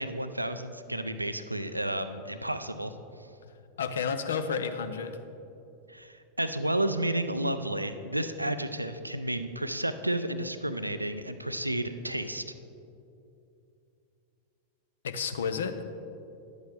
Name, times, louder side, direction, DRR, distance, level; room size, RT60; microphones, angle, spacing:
voice 1, 0.0-2.9 5.9-12.5, right 1 dB, 85° right, 10 dB, 0.4 m, -31 dB
voice 2, 3.8-5.2 15.0-15.8, left 6 dB, 65° left, 9 dB, 0.5 m, -31 dB
11.0 x 8.1 x 3.4 m, 2.7 s
figure-of-eight pair, 90°, 0 cm